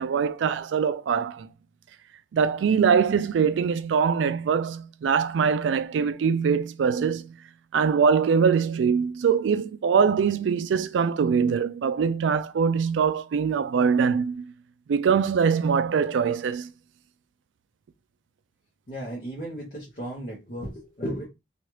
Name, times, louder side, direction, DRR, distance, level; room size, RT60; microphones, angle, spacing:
voice 1, 0.0-1.5 2.3-7.4 7.7-14.5 14.9-16.7, right 6 dB, 80° right, 0.3 m, -23 dB
voice 2, 18.9-21.3, equal, 50° left, 1.0 m, -35 dB
3.0 x 2.4 x 3.0 m
head